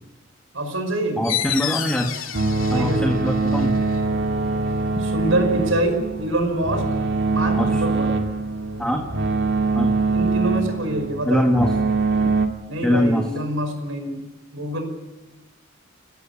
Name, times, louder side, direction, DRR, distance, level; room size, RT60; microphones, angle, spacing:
voice 1, 0.5-1.3 2.7-3.3 5.0-6.8 7.3-8.2 10.1-11.6 12.7-14.2 14.5-14.8, right 1 dB, 85° right, 6 dB, 5.4 m, -25 dB
sound 1, 1.2-6.5, left 11 dB, 90° left, 2.2 m, -32 dB
voice 2, 1.2-2.1 2.7-3.8 7.6-7.8 8.8-9.1 9.8-9.9 11.3-11.7 12.8-13.3, equal, 5° left, 2 dB, 1.8 m, -22 dB
sound 2, 2.3-12.5, right 3 dB, 60° right, 1.9 m, -23 dB
30.0 x 13.5 x 8.6 m, 1.1 s
head